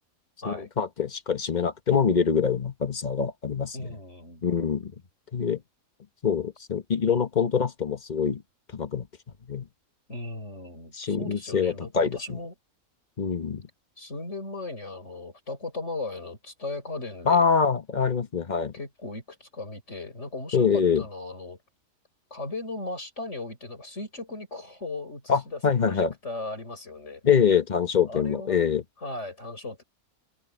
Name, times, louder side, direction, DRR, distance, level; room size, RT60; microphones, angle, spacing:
voice 1, 0.4-3.9 4.4-4.9 5.3-5.6 6.2-8.4 8.7-9.1 9.5-9.7 10.9-12.4 13.2-13.6 17.3-18.7 20.5-21.0 25.3-26.1 27.2-28.8, left 6 dB, 35° left, 1.1 m, -24 dB
voice 2, 3.7-4.4 10.1-12.5 14.0-17.4 18.7-21.6 22.3-27.2 28.1-28.6 29.0-29.8, left 2 dB, 50° left, 6.5 m, -37 dB
omnidirectional pair, 1.6 m